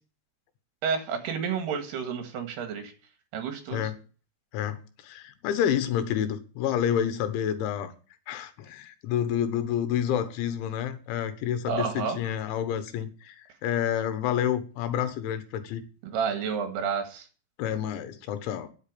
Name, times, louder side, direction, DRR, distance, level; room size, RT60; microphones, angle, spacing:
voice 1, 0.8-2.9 3.3-3.9 11.7-12.2 16.0-17.3, right 6 dB, 70° right, 3.6 m, -30 dB
voice 2, 4.5-7.9 8.3-15.8 17.6-18.7, left 9 dB, 90° left, 3.7 m, -29 dB
10.0 x 8.1 x 8.5 m
omnidirectional pair, 5.2 m